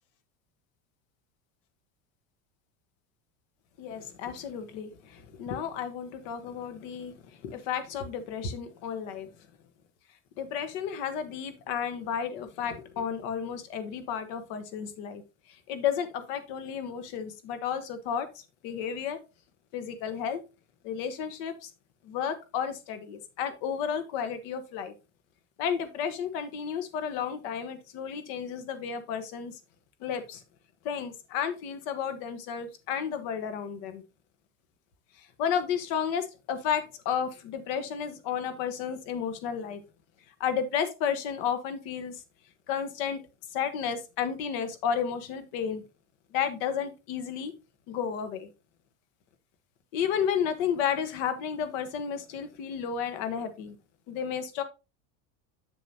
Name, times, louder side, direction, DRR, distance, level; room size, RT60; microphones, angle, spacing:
voice 1, 3.8-4.9 5.4-7.1 7.4-9.3 10.4-15.2 15.7-18.3 18.6-19.2 19.7-20.4 20.8-21.5 22.1-24.9 25.6-29.5 30.0-30.4 30.8-34.0 35.4-39.8 40.4-42.1 42.7-43.2 43.5-45.8 46.3-47.5 47.9-48.5 49.9-53.7 54.1-54.6, left 7 dB, 60° left, 10 dB, 1.4 m, -32 dB
7.3 x 7.0 x 2.8 m, 0.28 s
cardioid pair, 160°, 43 cm